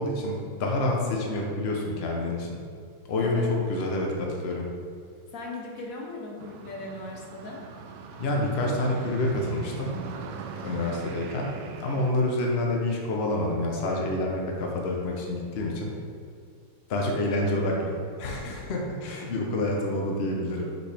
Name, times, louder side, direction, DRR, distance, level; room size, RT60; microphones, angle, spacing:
voice 1, 0.0-2.6 3.1-4.7 8.2-10.0 10.6-15.9 16.9-20.7, left 2 dB, 80° left, -1 dB, 0.5 m, -28 dB
voice 2, 3.2-3.9 5.3-7.6 18.3-18.6, left 2 dB, 55° left, -1 dB, 1.0 m, -39 dB
sound 1, 6.4-12.1, right 6 dB, 75° right, 1.0 m, -40 dB
6.6 x 5.3 x 3.4 m, 2.3 s
omnidirectional pair, 2.3 m